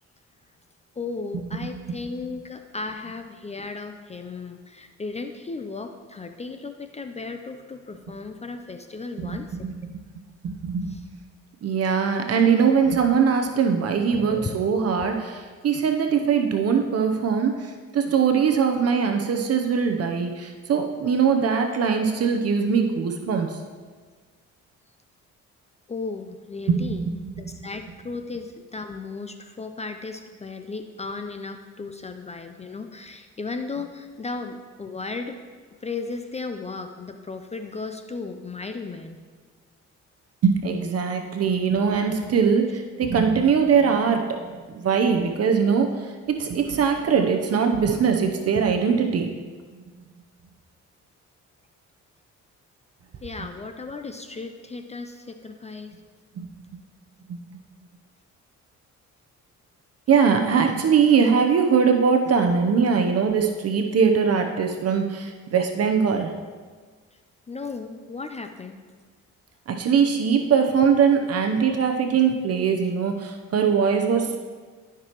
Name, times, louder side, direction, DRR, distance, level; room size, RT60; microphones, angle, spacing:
voice 1, 1.0-9.7 10.9-11.0 14.1-14.6 15.0-15.1 25.9-27.0 27.4-35.4 35.8-39.2 53.2-55.9 67.5-68.8, left 4 dB, 20° left, 6 dB, 0.5 m, -35 dB
voice 2, 9.2-10.0 10.4-10.9 11.6-23.6 26.7-27.5 40.4-44.3 44.7-49.3 56.4-56.5 57.3-57.4 60.1-66.3 69.7-74.4, right 6 dB, 55° right, 4 dB, 0.8 m, -21 dB
12.5 x 6.0 x 3.0 m, 1.5 s
cardioid pair, 90°, 30 cm